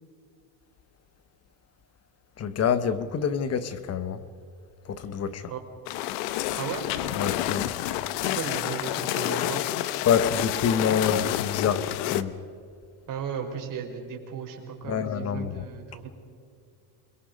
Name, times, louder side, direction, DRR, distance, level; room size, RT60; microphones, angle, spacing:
voice 1, 2.4-4.2 4.9-5.5 7.1-7.7 10.0-12.4 14.9-15.7, left 7 dB, 30° left, 1.1 m, -27 dB
sound 1, 5.9-12.2, left 14 dB, 75° left, 1.1 m, -29 dB
voice 2, 8.3-9.6 13.1-16.1, right 7 dB, 40° right, 4.4 m, -35 dB
29.0 x 21.5 x 5.2 m
cardioid pair, 140°, 49 cm